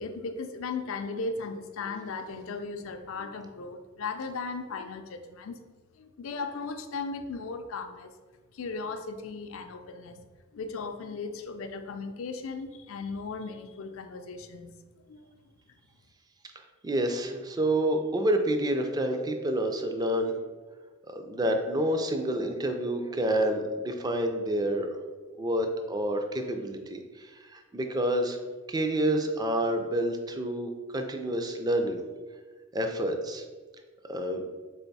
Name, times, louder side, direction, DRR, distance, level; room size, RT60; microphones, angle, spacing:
voice 1, 0.0-5.6 6.0-8.1 8.5-10.2 10.5-14.7 15.1-15.5, left 4 dB, 70° left, 7 dB, 0.4 m, -37 dB
voice 2, 16.8-20.3 21.1-24.9 25.4-28.4 28.7-32.0 32.7-33.4 34.1-34.4, right 1 dB, 20° right, 5 dB, 0.4 m, -28 dB
3.8 x 3.4 x 4.0 m, 1.4 s
head